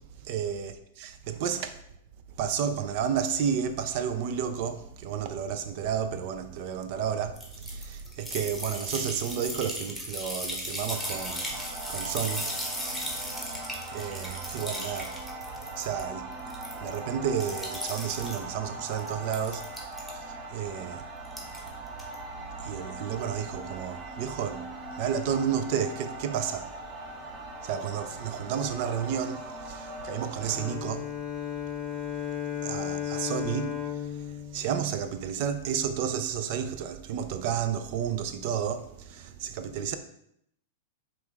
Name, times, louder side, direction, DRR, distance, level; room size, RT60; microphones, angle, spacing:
voice 1, 0.3-0.7 1.0-1.8 2.4-11.6 11.9-12.5 13.4-13.6 13.9-15.1 15.8-16.3 16.8-19.7 20.1-21.0 22.6-24.7 25.0-26.7 27.6-31.1 32.6-34.0 34.5-40.0, right 8 dB, 55° right, 0.4 m, -31 dB
sound 1, 7.4-16.0 16.3-17.0 17.4-18.4 18.9-20.1 21.2-21.7 22.0-22.1, equal, ahead, 0.9 m, -36 dB
sound 2, 10.9-30.7, right 2 dB, 35° right, 0.8 m, -41 dB
Bowed string instrument, 30.4-35.6, left 10 dB, 45° left, 0.6 m, -35 dB
4.8 x 2.4 x 3.4 m
hypercardioid pair, 125°, 0 cm